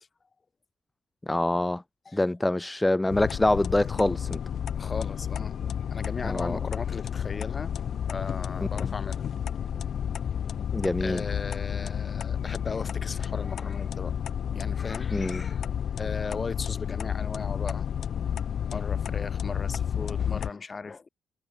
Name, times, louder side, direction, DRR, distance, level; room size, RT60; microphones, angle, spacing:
voice 1, 1.2-1.8 2.1-4.4 6.2-6.6 8.8-8.9 10.7-11.2 15.1-15.4, left 1 dB, 10° left, 1.4 m, -25 dB
sound 1, 3.1-20.5, left 8 dB, 60° left, 3.1 m, -31 dB
voice 2, 4.7-5.6 5.9-7.7 8.1-9.2 11.0-14.1 14.5-15.7 16.0-17.9 18.7-21.1, left 4 dB, 30° left, 6.3 m, -37 dB
cardioid pair, 90°, 0 cm